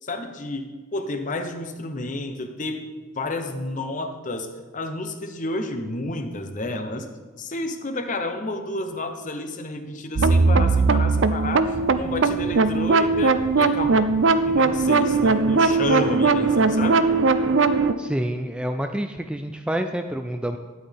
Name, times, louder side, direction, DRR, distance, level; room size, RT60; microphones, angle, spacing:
voice 1, 0.0-2.8 3.1-4.5 4.7-7.1 7.4-14.1 14.4-17.0, left 2 dB, 40° left, 7 dB, 0.9 m, -30 dB
sound 1, 10.2-17.9, right 4 dB, 70° right, 0.5 m, -19 dB
voice 2, 18.0-20.6, right 1 dB, 5° right, 6 dB, 0.3 m, -28 dB
12.5 x 9.6 x 3.5 m, 1.4 s
head